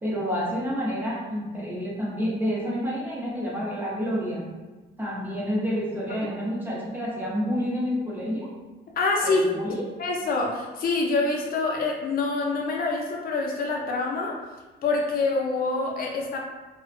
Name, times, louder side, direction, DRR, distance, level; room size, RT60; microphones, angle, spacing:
voice 1, 0.0-4.4 5.0-8.5 9.2-9.8, equal, 10° right, -5 dB, 0.7 m, -29 dB
voice 2, 9.0-9.5 10.0-14.4 14.8-16.4, left 3 dB, 50° left, -1 dB, 0.5 m, -26 dB
2.4 x 2.1 x 2.5 m, 1.2 s
cardioid pair, 90°, 20 cm